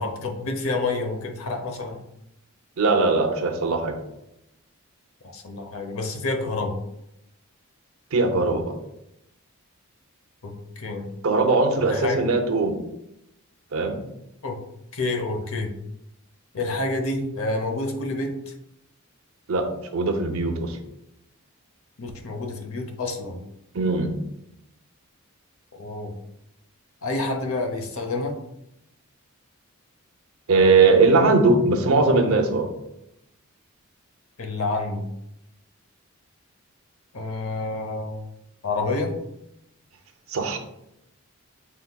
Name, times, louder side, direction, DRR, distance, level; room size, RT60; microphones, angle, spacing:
voice 1, 0.0-2.0 5.2-6.8 10.4-11.1 11.8-12.2 14.4-14.6 14.9-15.7 16.5-18.5 22.0-23.4 25.7-26.1 27.0-28.4 34.4-35.1 37.1-38.2 38.6-39.1, left 2 dB, 70° left, 4 dB, 0.7 m, -28 dB
voice 2, 2.8-3.9 8.1-8.7 11.2-12.8 13.7-14.0 19.5-19.7 19.9-20.8 23.7-24.1 30.5-32.7 40.3-40.6, right 3 dB, 70° right, 6 dB, 0.6 m, -20 dB
5.7 x 3.5 x 2.2 m, 0.82 s
head